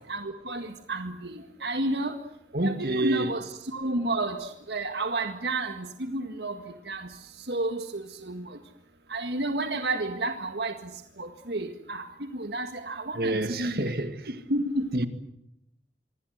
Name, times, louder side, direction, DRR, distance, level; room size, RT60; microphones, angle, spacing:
voice 1, 0.1-1.3 1.6-2.1 2.6-6.5 6.9-7.1 7.5-8.5 9.1-10.8 11.2-13.8 14.5-14.9, right 2 dB, 75° right, 1.9 m, -31 dB
voice 2, 2.5-3.4 13.1-14.4 14.9-15.1, right 2 dB, 55° right, 2.1 m, -28 dB
25.5 x 24.0 x 8.0 m
head